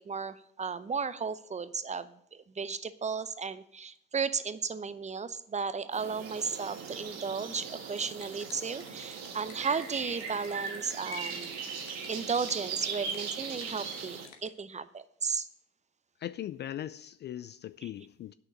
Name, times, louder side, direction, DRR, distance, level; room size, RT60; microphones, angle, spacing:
voice 1, 0.0-11.6 12.1-15.5, right 5 dB, 25° right, 0.7 m, -34 dB
sound 1, 5.9-14.3, right 5 dB, 60° right, 2.0 m, -39 dB
sound 2, 7.6-14.5, left 7 dB, 60° left, 1.7 m, -55 dB
voice 2, 16.2-18.3, left 11 dB, 35° left, 0.4 m, -39 dB
8.8 x 6.4 x 8.0 m
hypercardioid pair, 60°, 30 cm